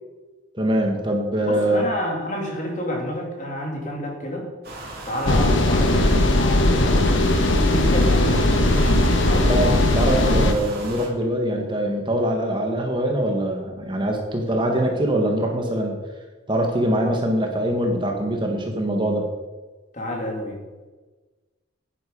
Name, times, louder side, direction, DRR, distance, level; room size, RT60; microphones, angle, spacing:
voice 1, 0.5-1.9 9.5-16.0 16.5-19.3, right 1 dB, 25° right, 2 dB, 1.5 m, -23 dB
voice 2, 1.5-4.5 5.0-7.2 7.6-9.5 19.9-20.6, equal, 40° left, 0 dB, 2.6 m, -29 dB
sound 1, 4.6-11.1, right 2 dB, 55° right, 3.1 m, -36 dB
sound 2, 5.3-10.5, left 1 dB, 80° left, 1.2 m, -18 dB
10.0 x 10.0 x 5.4 m, 1.2 s
head